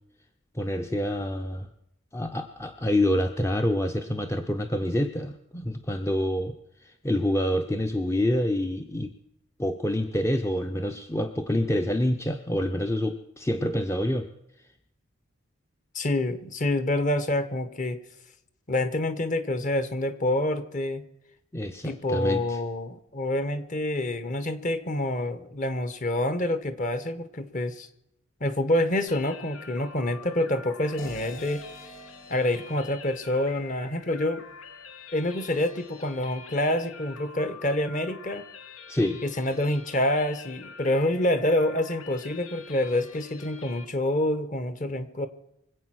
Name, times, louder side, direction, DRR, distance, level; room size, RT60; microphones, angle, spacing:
voice 1, 0.5-1.7 2.1-6.6 6.8-9.1 9.6-14.3 21.5-22.6 38.9-39.2, left 1 dB, 15° left, 6 dB, 0.6 m, -27 dB
voice 2, 15.9-18.0 18.7-21.0 21.8-27.9 28.4-31.6 32.3-34.4 35.1-38.5 39.2-45.3, left 1 dB, 35° left, 12 dB, 1.1 m, -27 dB
sound 1, 29.1-43.9, left 5 dB, 85° left, 1.5 m, -46 dB
sound 2, 31.0-34.1, right 1 dB, 65° left, 3.0 m, -47 dB
24.5 x 8.5 x 6.2 m, 0.81 s
head